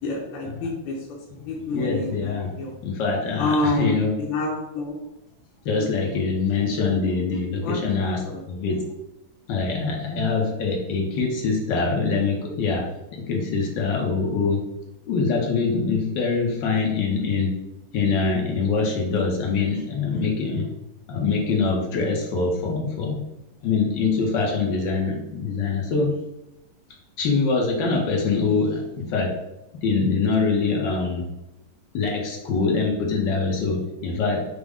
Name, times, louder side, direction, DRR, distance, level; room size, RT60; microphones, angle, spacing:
voice 1, 0.0-1.0 1.5-2.8 3.4-4.9 5.7-6.0 7.6-7.8 8.3-8.4, left 2 dB, 85° left, -3 dB, 1.6 m, -28 dB
voice 2, 1.3-4.1 5.6-8.8 9.5-12.9 13.1-14.6 15.1-17.5 17.9-20.7 21.1-23.2 23.6-26.1 27.2-29.3 29.8-31.2 31.9-34.4, left 4 dB, 65° left, -1 dB, 1.3 m, -24 dB
6.2 x 2.1 x 3.4 m, 0.94 s
omnidirectional pair, 2.4 m